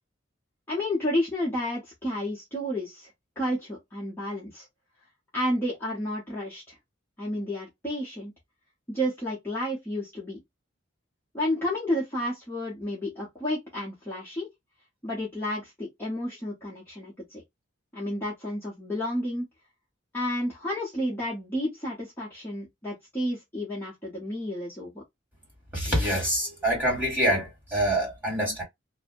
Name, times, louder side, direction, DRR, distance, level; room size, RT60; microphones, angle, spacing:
voice 1, 0.7-3.1 3.4-4.6 5.3-6.7 7.2-8.3 8.9-10.4 11.3-14.5 15.0-17.4 17.9-19.4 20.1-25.0, left 1 dB, 10° left, 0.9 m, -31 dB
voice 2, 25.7-28.6, right 1 dB, 10° right, 1.8 m, -26 dB
2.6 x 2.1 x 2.5 m
head